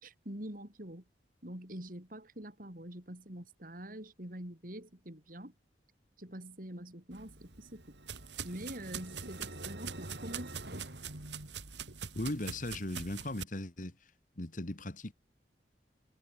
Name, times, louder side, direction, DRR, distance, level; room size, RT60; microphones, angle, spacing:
voice 1, 0.0-1.0 1.4-5.5 6.2-7.8 8.4-10.8, right 1 dB, 50° right, 4.8 m, -45 dB
sound 1, 7.1-13.4, right 6 dB, 90° right, 3.9 m, -44 dB
sound 2, 7.5-12.1, right 1 dB, 70° right, 6.3 m, -48 dB
voice 2, 12.1-14.0 14.4-15.1, left 1 dB, 50° left, 1.9 m, -38 dB
head